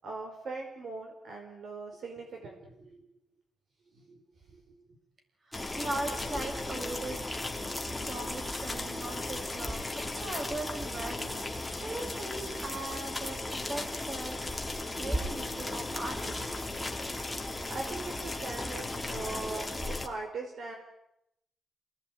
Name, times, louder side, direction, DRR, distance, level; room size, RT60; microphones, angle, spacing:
voice 1, 0.0-3.1 3.9-4.2 4.5-4.7 8.0-8.2 8.9-9.0 17.3-20.8, right 3 dB, 65° right, 3 dB, 5.0 m, -41 dB
boiled water turn off gas, 5.5-20.1, left 2 dB, 10° left, 2.9 m, -36 dB
voice 2, 5.5-7.2 8.0-14.4 15.0-16.6, right 2 dB, 40° right, 5 dB, 7.0 m, -39 dB
29.5 x 19.0 x 9.5 m, 0.83 s
cardioid pair, 120°, 0 cm